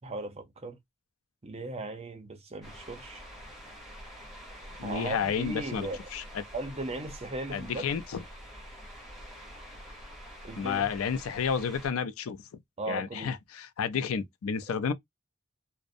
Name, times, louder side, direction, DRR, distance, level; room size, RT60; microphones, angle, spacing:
voice 1, 0.0-0.8 1.4-3.2 4.8-6.0 6.5-7.8 10.4-10.9 12.8-13.3 14.0-14.1, right 2 dB, 30° right, 0.6 m, -37 dB
sound 1, 2.6-11.9, equal, ahead, 0.9 m, -47 dB
voice 2, 4.8-6.4 7.5-8.2 10.6-12.4 12.9-14.9, left 6 dB, 85° left, 0.4 m, -31 dB
2.5 x 2.0 x 2.5 m
head